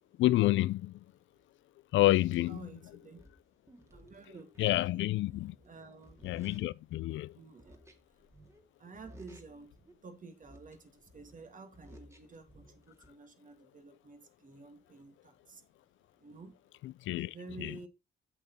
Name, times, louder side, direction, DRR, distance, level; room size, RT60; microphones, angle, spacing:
voice 1, 0.2-0.9 1.9-2.6 4.6-5.5 6.2-7.4 16.8-17.7, left 16 dB, 75° left, 0.4 m, -29 dB
sound 1, 2.5-2.6 3.2-7.2 7.6-8.7 8.9-10.0 10.4-13.1, equal, 15° right, 2.1 m, -57 dB
voice 2, 2.5-3.2 3.9-5.1 5.6-6.2 7.3-7.8 8.1-8.2 8.8-15.7 16.2-16.5 17.1-17.9, right 4 dB, 40° right, 2.1 m, -51 dB
8.1 x 7.2 x 4.1 m
cardioid pair, 90°, 20 cm